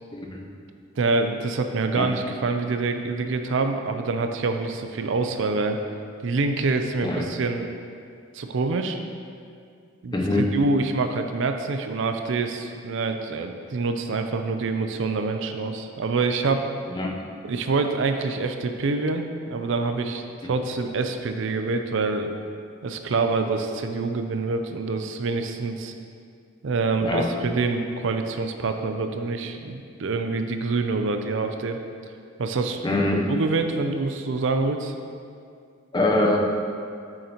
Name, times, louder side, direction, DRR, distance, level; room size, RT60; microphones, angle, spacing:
voice 1, 0.1-0.4 2.0-2.1 7.0-7.3 10.1-10.5 16.9-17.2 27.0-27.3 32.8-33.3 35.9-36.4, left 1 dB, 20° left, 0 dB, 0.7 m, -23 dB
voice 2, 1.0-5.8 6.2-7.7 8.3-9.0 10.0-16.6 17.4-19.3 19.5-22.3 22.8-25.9 26.6-31.8 32.4-32.8 33.3-34.9, right 3 dB, 65° right, 6 dB, 0.5 m, -26 dB
8.3 x 6.5 x 2.9 m, 2.3 s
head